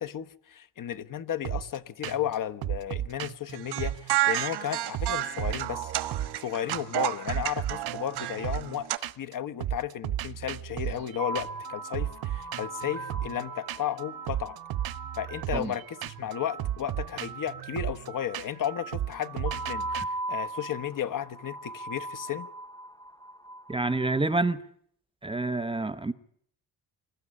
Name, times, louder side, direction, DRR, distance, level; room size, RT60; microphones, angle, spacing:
voice 1, 0.0-8.9 9.2-14.6 15.2-22.5, left 10 dB, 55° left, 1.2 m, -34 dB
sound 1, 1.4-1.8 2.0-2.3 2.6-4.7 4.9-6.4 6.7-7.0 7.3-9.3 9.6-20.0, right 12 dB, 65° right, 0.9 m, -35 dB
sound 2, 3.5-9.0, right 14 dB, 90° right, 1.3 m, -31 dB
sound 3, 11.2-16.5 19.5-24.2, right 1 dB, 10° left, 0.9 m, -39 dB
voice 2, 23.7-24.6 25.2-26.1, right 2 dB, 15° right, 0.9 m, -27 dB
26.0 x 13.5 x 10.0 m
cardioid pair, 135°, 39 cm